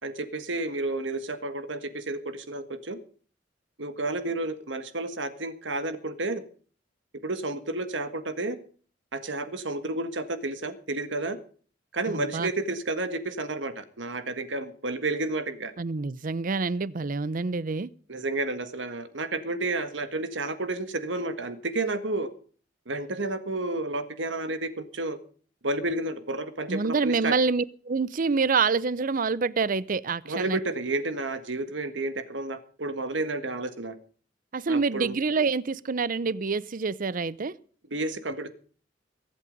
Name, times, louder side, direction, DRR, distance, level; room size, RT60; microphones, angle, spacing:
voice 1, 0.0-3.0 3.8-6.4 7.2-8.6 9.1-11.4 11.9-15.7 18.1-22.3 22.9-25.2 25.6-27.3 30.3-34.0 34.7-35.1 37.9-38.5, right 2 dB, 85° right, 1.7 m, -31 dB
voice 2, 12.1-12.5 15.8-17.9 26.7-30.6 34.5-37.5, right 4 dB, 50° right, 0.6 m, -27 dB
23.0 x 8.5 x 5.3 m
head